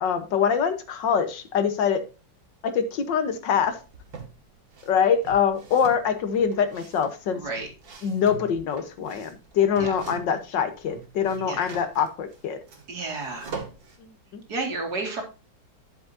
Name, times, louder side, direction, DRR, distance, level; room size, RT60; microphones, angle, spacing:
voice 1, 0.0-2.0 2.7-3.8 4.9-7.4 8.0-12.6 14.3-14.4, left 7 dB, 75° left, 9 dB, 1.7 m, -24 dB
sound 1, 3.6-4.3 4.7-10.5 10.8-14.0, right 5 dB, 80° right, 2.8 m, -42 dB
voice 2, 7.3-7.7 9.8-9.9 11.4-11.7 12.9-13.5 14.5-15.2, right 3 dB, 55° right, 1 dB, 2.7 m, -31 dB
11.5 x 7.1 x 2.7 m, 0.32 s
omnidirectional pair, 2.0 m